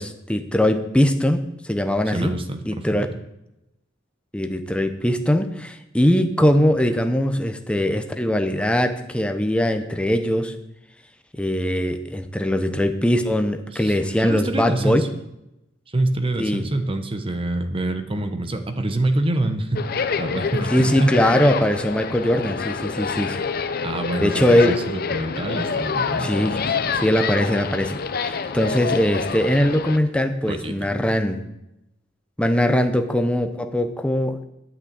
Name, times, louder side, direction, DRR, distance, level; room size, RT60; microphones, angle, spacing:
voice 1, 0.0-2.3 2.6-3.1 4.3-10.5 11.3-15.0 16.4-16.7 20.7-23.4 24.2-24.8 26.2-26.6 26.9-31.4 32.4-34.4, left 1 dB, 5° left, 6 dB, 0.7 m, -21 dB
voice 2, 2.1-3.1 13.7-14.0 14.2-15.1 15.9-19.8 20.2-21.2 23.8-26.6 30.5-30.7, right 2 dB, 25° right, 8 dB, 0.9 m, -26 dB
sound 1, 19.7-30.0, left 5 dB, 50° left, 0.6 m, -27 dB
9.6 x 6.0 x 8.1 m, 0.89 s
head